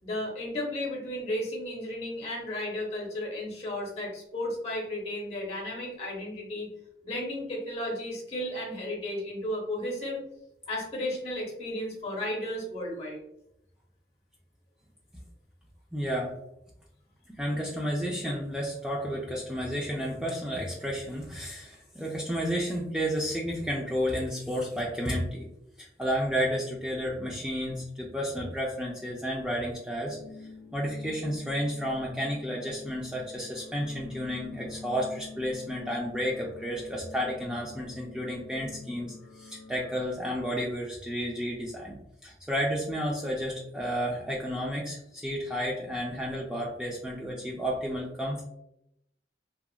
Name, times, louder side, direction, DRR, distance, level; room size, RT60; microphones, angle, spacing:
voice 1, 0.0-6.7 7.0-10.2 10.7-13.2, left 1 dB, 35° left, -1 dB, 0.9 m, -34 dB
voice 2, 15.9-16.3 17.4-25.5 25.8-42.0 42.2-48.4, equal, 5° right, -4 dB, 0.3 m, -32 dB
sound 1, 30.1-40.1, left 3 dB, 70° left, 0.6 m, -47 dB
2.8 x 2.4 x 2.3 m, 0.81 s
head